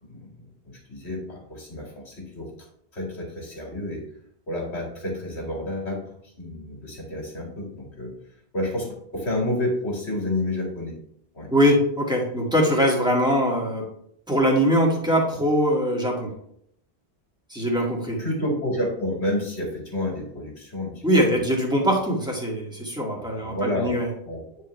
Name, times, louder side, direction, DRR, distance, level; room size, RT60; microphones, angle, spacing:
voice 1, 0.0-2.5 2.9-4.0 4.5-8.1 8.5-10.9 11.3-11.5 18.2-21.4 23.2-24.0 24.2-24.4, left 1 dB, 75° left, -2 dB, 2.6 m, -30 dB
voice 2, 11.5-13.9 14.3-16.3 17.5-18.2 21.0-24.1, equal, 5° right, -3 dB, 2.0 m, -22 dB
10.0 x 4.8 x 3.3 m, 0.68 s
omnidirectional pair, 1.1 m